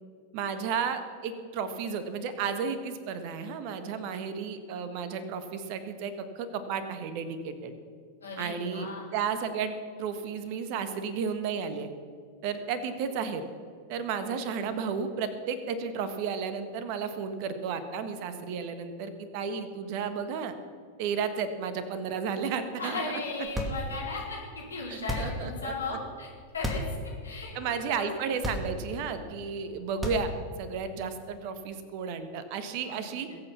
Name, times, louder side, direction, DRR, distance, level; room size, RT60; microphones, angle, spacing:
voice 1, 0.3-7.7 8.4-11.9 12.4-13.4 13.9-20.5 21.0-23.0 24.9-25.7 27.5-30.3 30.6-33.3, right 6 dB, 45° right, 10 dB, 1.6 m, -33 dB
voice 2, 8.2-9.1 22.8-26.8 27.2-27.5 27.8-28.1 32.9-33.4, left 3 dB, 70° left, -2 dB, 4.3 m, -36 dB
sound 1, 23.4-24.1 25.0-25.5 26.5-27.0 27.4-27.5 28.3-29.0 29.9-30.6, left 1 dB, 10° right, 2.5 m, -33 dB
21.0 x 8.6 x 5.9 m, 2.2 s
figure-of-eight pair, 90°, 0 cm